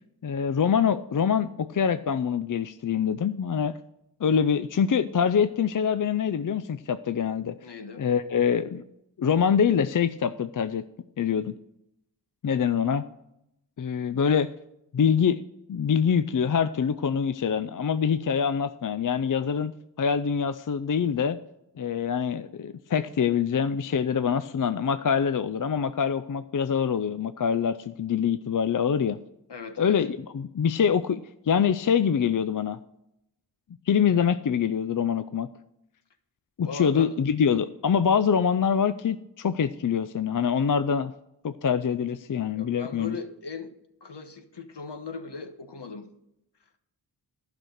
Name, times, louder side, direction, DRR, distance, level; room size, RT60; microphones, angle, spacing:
voice 1, 0.2-3.8 4.2-7.5 8.0-8.8 9.2-10.8 11.2-11.5 12.4-13.0 13.8-14.5 14.9-15.4 15.7-19.7 20.0-21.4 21.8-29.2 29.8-31.2 31.5-32.8 33.9-35.5 36.6-41.1 41.4-43.2, left 7 dB, 50° left, 12 dB, 0.5 m, -25 dB
voice 2, 7.6-8.0 29.5-30.0 36.6-37.1 42.5-43.7 44.0-46.1, left 4 dB, 70° left, 7 dB, 1.2 m, -38 dB
12.0 x 6.0 x 6.4 m, 0.82 s
wide cardioid pair, 50°, 44 cm